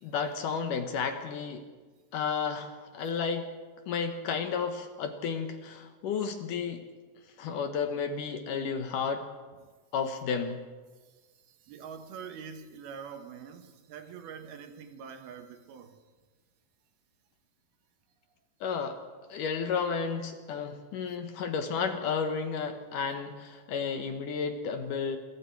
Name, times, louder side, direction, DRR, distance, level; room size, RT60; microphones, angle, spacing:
voice 1, 0.0-1.6 2.1-3.5 3.9-6.8 7.4-9.3 9.9-10.6 18.6-19.0 19.3-25.2, left 6 dB, 65° left, 7 dB, 2.3 m, -32 dB
voice 2, 11.5-16.0 21.1-21.2, right 7 dB, 75° right, 7 dB, 3.2 m, -45 dB
27.0 x 22.0 x 4.7 m, 1.4 s
omnidirectional pair, 4.6 m